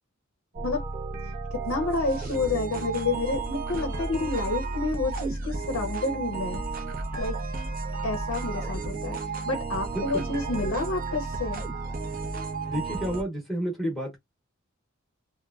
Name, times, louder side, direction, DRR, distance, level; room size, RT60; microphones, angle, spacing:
sound 1, 0.5-13.2, right 3 dB, 40° right, 0.7 m, -33 dB
voice 1, 1.2-6.6 7.2-7.4 8.0-9.2 9.5-11.6, left 3 dB, 65° left, 0.5 m, -29 dB
voice 2, 9.9-10.3 12.7-14.2, equal, ahead, 0.9 m, -30 dB
3.0 x 2.1 x 2.3 m
head